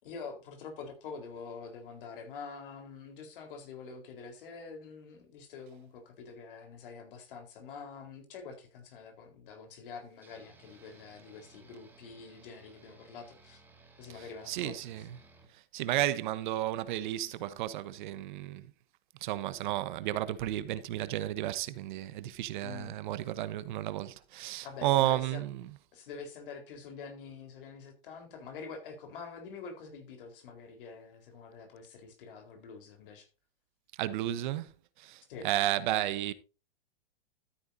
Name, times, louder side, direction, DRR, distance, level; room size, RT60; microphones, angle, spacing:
voice 1, 0.0-13.6 14.0-14.8 22.6-22.9 24.6-25.4 25.9-33.3 35.3-35.5, left 5 dB, 60° left, 4.2 m, -46 dB
sound 1, 10.2-15.5, right 3 dB, 5° right, 2.1 m, -59 dB
voice 2, 14.1-15.2 15.5-18.7 19.2-25.7 33.9-34.7 35.0-36.3, right 13 dB, 50° right, 1.0 m, -33 dB
13.0 x 9.2 x 2.7 m
hypercardioid pair, 140°, 30 cm